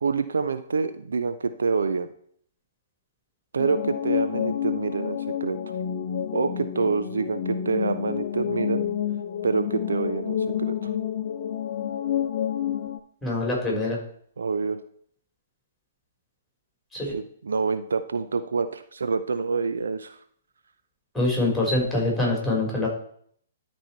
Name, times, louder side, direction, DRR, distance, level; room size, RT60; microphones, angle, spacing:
voice 1, 0.0-2.1 3.5-5.6 6.3-8.8 9.4-10.9 14.4-14.8 17.1-20.2, right 4 dB, 70° right, 10 dB, 0.6 m, -27 dB
sound 1, 3.6-13.0, left 9 dB, 50° left, 0.8 m, -29 dB
voice 2, 13.2-14.0 16.9-17.1 21.1-22.9, left 2 dB, ahead, -3 dB, 4.0 m, -24 dB
13.0 x 4.4 x 4.5 m, 0.62 s
figure-of-eight pair, 120°, 0 cm